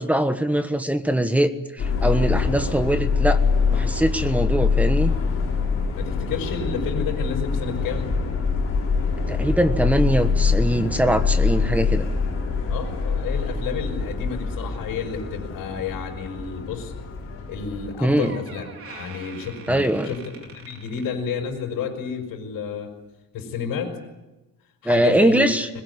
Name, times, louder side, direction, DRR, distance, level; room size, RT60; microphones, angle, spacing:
voice 1, 0.0-1.5 1.8-3.4 3.7-5.1 9.3-12.1 18.0-18.4 19.7-20.1 24.8-25.7, right 1 dB, 5° right, 9 dB, 1.3 m, -22 dB
Subway metro underground, 1.8-17.9, left 5 dB, 40° left, 7.2 m, -24 dB
voice 2, 5.9-8.1 12.7-16.9 17.5-20.2 20.5-22.9 23.3-24.0 24.8-25.7, left 6 dB, 70° left, 2 dB, 5.8 m, -31 dB
Door, 17.7-17.9 18.2-21.7 22.0-22.3 23.1-23.2, right 5 dB, 40° right, 4.2 m, -44 dB
22.0 x 21.0 x 9.7 m, 1.0 s
cardioid pair, 155°, 35 cm